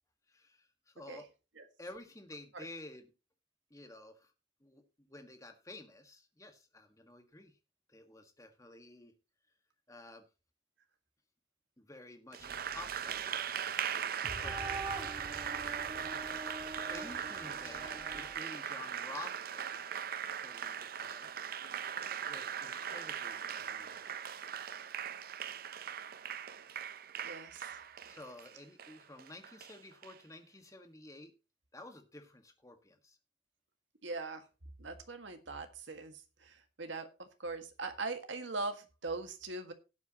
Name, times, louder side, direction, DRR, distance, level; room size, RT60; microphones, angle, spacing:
voice 1, 0.3-1.3 1.8-3.1 3.7-4.3 4.6-7.6 7.9-9.1 9.9-10.2 11.8-13.3 14.4-14.7 16.0-19.9 20.4-21.3 22.3-24.1 27.5-27.7 28.0-31.3 31.7-33.2, left 2 dB, 15° left, 6 dB, 1.5 m, -51 dB
Applause, 12.3-30.2, right 8 dB, 50° right, 0.6 m, -40 dB
sound 1, 12.4-18.3, right 2 dB, 25° right, 1.8 m, -45 dB
voice 2, 27.2-27.8 34.0-34.5 34.8-39.7, right 3 dB, 75° right, 6 dB, 1.7 m, -41 dB
18.0 x 8.2 x 2.9 m, 0.30 s
head